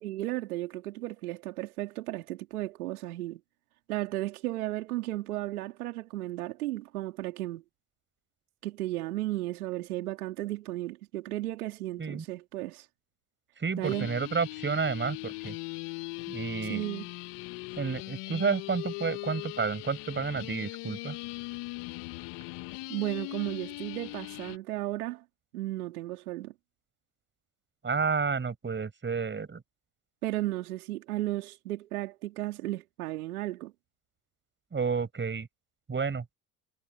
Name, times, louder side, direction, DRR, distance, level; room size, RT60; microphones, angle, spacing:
voice 1, 0.0-3.4 3.9-7.6 8.6-12.9 13.8-14.1 16.7-17.1 22.9-25.2 25.5-26.5 30.2-33.7, right 16 dB, 85° right, 3.4 m, -34 dB
voice 2, 13.6-15.5 16.3-16.8 17.8-21.2 27.8-29.6 34.7-35.5 35.9-36.2, right 5 dB, 25° right, 6.6 m, -30 dB
sound 1, 13.8-24.6, left 25 dB, 65° left, 1.6 m, -40 dB
hypercardioid pair, 75°, 43 cm